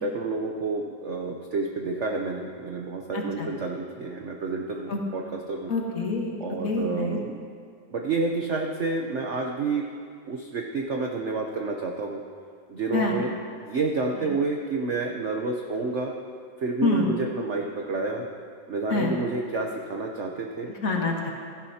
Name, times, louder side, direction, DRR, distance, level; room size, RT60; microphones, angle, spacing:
voice 1, 0.0-5.7 6.4-7.4 7.9-9.9 10.3-12.2 12.7-16.1 16.6-18.3 18.7-20.7, right 3 dB, 60° right, 1 dB, 0.7 m, -29 dB
voice 2, 5.7-6.3 6.6-7.2 12.9-13.2 16.8-17.1 18.9-19.1 20.8-21.3, left 3 dB, 50° left, 0 dB, 1.6 m, -26 dB
16.0 x 12.5 x 2.8 m, 2.2 s
omnidirectional pair, 2.1 m